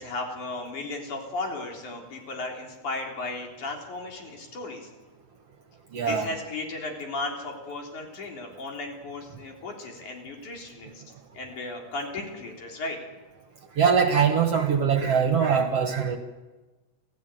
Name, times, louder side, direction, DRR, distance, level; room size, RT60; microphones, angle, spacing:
voice 1, 0.0-4.9 6.1-11.0 11.3-13.0, left 2 dB, 70° left, 1 dB, 5.1 m, -35 dB
voice 2, 5.9-6.3 13.8-16.2, right 7 dB, 55° right, 6 dB, 2.2 m, -22 dB
28.0 x 16.0 x 9.2 m, 1.2 s
omnidirectional pair, 3.6 m